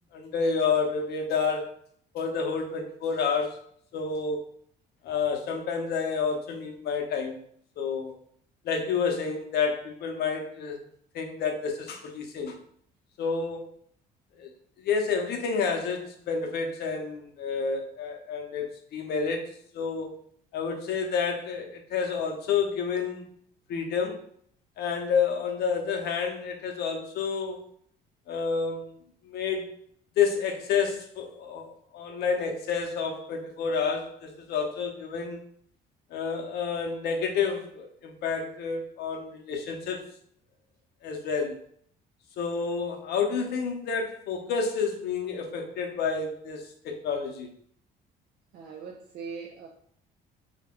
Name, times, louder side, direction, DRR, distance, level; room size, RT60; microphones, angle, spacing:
voice 1, 0.1-1.7 2.1-3.6 3.9-4.4 5.0-7.4 7.8-8.1 8.6-10.8 11.1-12.6 13.2-13.7 14.4-14.5 14.8-18.7 18.9-20.1 20.5-23.3 23.7-24.2 24.8-27.6 28.3-28.9 29.2-29.7 30.2-35.4 36.1-40.0 41.0-41.6 42.4-47.5, left 5 dB, 70° left, 3 dB, 0.6 m, -29 dB
voice 2, 48.5-49.7, right 5 dB, 65° right, 1 dB, 0.4 m, -40 dB
2.3 x 2.2 x 3.4 m, 0.62 s
cardioid pair, 135°, 18 cm